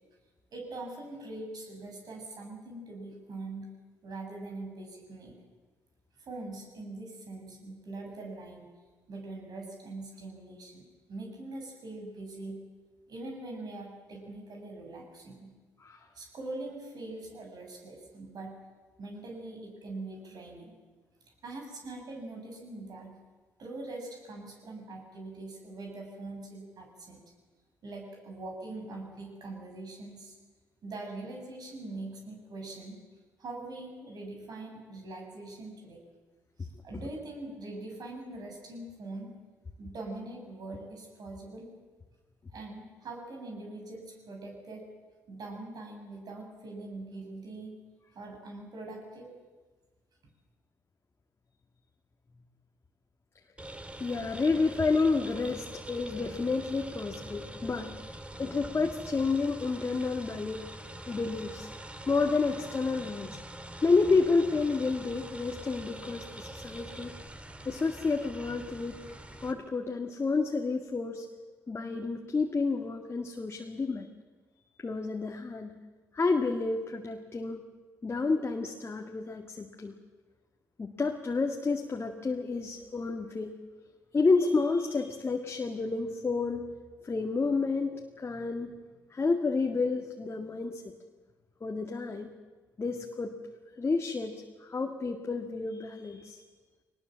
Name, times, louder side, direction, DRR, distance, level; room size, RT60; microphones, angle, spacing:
voice 1, 0.5-3.7 4.0-5.3 6.2-8.7 9.1-12.6 13.1-15.5 16.1-18.5 19.0-20.8 21.4-23.2 23.6-27.2 27.8-30.4 30.8-33.0 33.4-36.0 36.6-39.3 39.8-41.7 42.5-44.8 45.3-47.8 48.1-49.3, right 2 dB, 55° right, 1 dB, 6.7 m, -42 dB
sound 1, 53.6-69.5, right 1 dB, 15° right, 2.3 m, -44 dB
voice 2, 54.0-60.7 61.1-61.7 62.1-63.4 63.8-67.1 67.6-69.0 69.4-71.3 71.7-74.1 74.8-75.8 76.1-77.6 78.0-79.9 80.8-83.5 84.1-86.7 87.0-88.8 89.1-90.8 91.6-92.3 92.8-93.4 93.8-96.4, left 4 dB, 35° left, 2 dB, 1.9 m, -30 dB
21.0 x 19.5 x 7.5 m, 1.4 s
hypercardioid pair, 50°, 8 cm